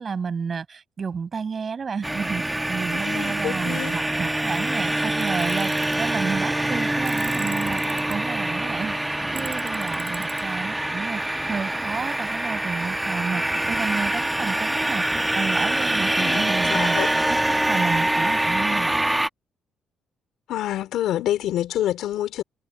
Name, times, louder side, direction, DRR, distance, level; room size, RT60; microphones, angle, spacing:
voice 1, 0.0-17.4 17.7-19.0, right 5 dB, 40° right, 7.0 m, -31 dB
sound 1, 2.0-19.3, right 1 dB, 10° right, 1.5 m, -25 dB
voice 2, 2.9-4.0 16.2-17.1 20.5-22.4, left 12 dB, 80° left, 4.7 m, -27 dB
Tools, 5.2-6.0 7.0-8.1 9.4-10.4, right 13 dB, 85° right, 4.8 m, -40 dB
cardioid pair, 90°, 0 cm